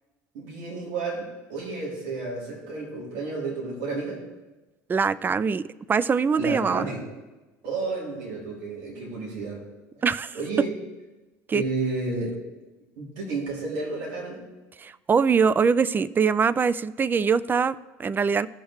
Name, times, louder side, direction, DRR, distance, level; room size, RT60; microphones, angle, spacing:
voice 1, 0.3-4.2 6.4-7.0 7.6-9.6 10.0-10.1 10.3-10.8 11.5-12.4 13.0-14.4, right 3 dB, 75° right, -2 dB, 2.9 m, -31 dB
voice 2, 4.9-6.9 10.0-10.7 11.5-11.6 14.8-18.5, right 5 dB, 25° right, 19 dB, 0.4 m, -23 dB
15.5 x 6.3 x 3.2 m, 1.1 s
supercardioid pair, 80°, 8 cm